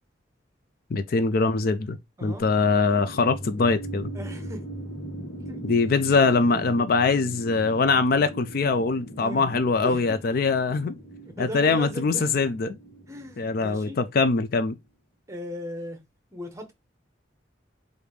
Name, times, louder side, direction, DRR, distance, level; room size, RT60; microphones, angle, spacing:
voice 1, 0.9-4.1 5.6-11.0 11.4-12.8 13.4-14.7, left 4 dB, 50° left, 0.4 m, -23 dB
sound 1, 2.4-14.5, right 1 dB, 75° left, 1.3 m, -40 dB
voice 2, 4.1-4.7 5.5-5.6 6.1-6.7 9.2-10.2 11.4-12.3 13.1-14.0 15.3-16.0 16.3-16.7, equal, 15° right, 0.9 m, -38 dB
4.9 x 2.6 x 3.2 m
head